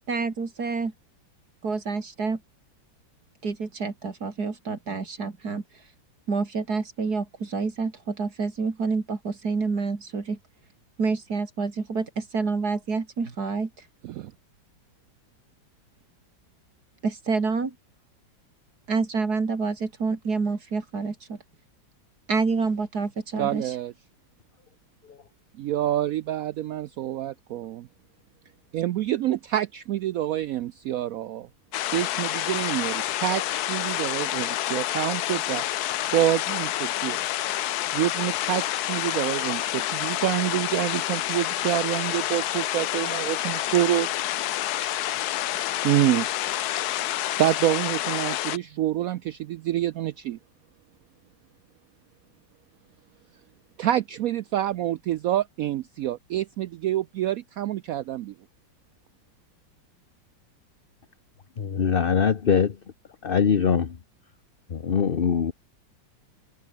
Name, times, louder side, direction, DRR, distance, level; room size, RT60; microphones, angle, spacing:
voice 1, 0.1-0.9 1.6-2.4 3.4-5.6 6.3-10.4 11.0-13.7 17.0-17.7 18.9-19.7 20.0-21.4 22.3-23.7, right 4 dB, 55° right, 3.2 m, -28 dB
voice 2, 23.4-23.9 25.6-27.9 28.7-31.5 31.9-35.6 36.1-37.2 37.9-44.1 45.8-46.3 47.4-50.4 53.8-58.3, right 13 dB, 90° right, 0.7 m, -27 dB
sound 1, 31.7-48.6, left 14 dB, 70° left, 1.0 m, -28 dB
voice 3, 61.6-62.7 63.2-63.9 64.7-65.5, left 7 dB, 40° left, 0.9 m, -22 dB
omnidirectional pair, 2.1 m